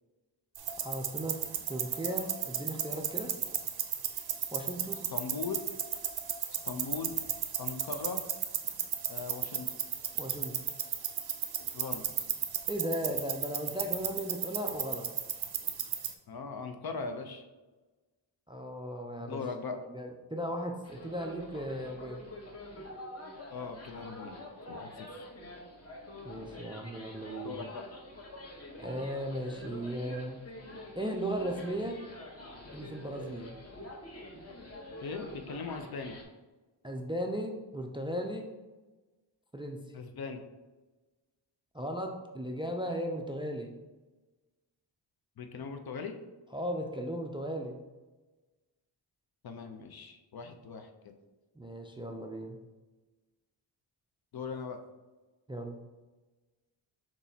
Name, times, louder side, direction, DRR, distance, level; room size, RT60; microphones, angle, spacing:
sound 1, 0.6-16.1, right 8 dB, 55° right, 0.6 m, -35 dB
voice 1, 0.8-1.4 1.7-3.3 4.5-5.0 10.1-10.6 12.7-15.1 18.5-19.4 19.7-22.3 26.2-27.6 28.8-30.4 31.0-32.0 32.7-33.6 36.8-38.5 39.5-39.9 41.7-43.8 46.5-47.8 51.6-52.6 55.5-55.8, equal, 10° right, 2 dB, 0.4 m, -36 dB
voice 2, 5.1-5.6 6.6-7.2 7.6-8.2 9.1-9.7 11.7-12.1 16.3-17.5 19.2-19.8 23.5-24.4 24.7-25.3 27.4-27.8 35.0-36.2 39.9-40.4 45.4-46.2 49.4-51.1 54.3-54.8, left 5 dB, 55° left, 6 dB, 0.6 m, -39 dB
sound 2, 20.8-36.2, left 1 dB, 30° left, 1.0 m, -47 dB
6.1 x 3.0 x 2.8 m, 1.2 s
cardioid pair, 80°, 46 cm